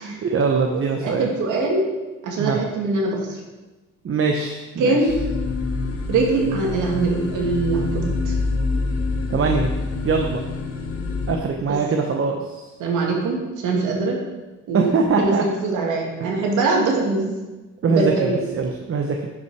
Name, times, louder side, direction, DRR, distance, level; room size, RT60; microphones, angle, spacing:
voice 1, 0.0-1.3 2.4-2.6 4.0-5.0 9.3-9.7 10.0-10.4 11.3-12.7 14.7-15.4 16.2-16.3 17.8-19.3, right 4 dB, 45° right, 3 dB, 1.0 m, -22 dB
voice 2, 1.0-1.8 2.2-3.4 4.8-5.1 6.1-8.3 12.8-14.2 14.7-17.4 17.9-18.4, right 3 dB, 85° right, -1 dB, 2.2 m, -22 dB
sound 1, 5.1-11.4, left 3 dB, 50° left, 1.3 m, -26 dB
10.5 x 5.8 x 4.7 m, 1.2 s
cardioid pair, 90°, 30 cm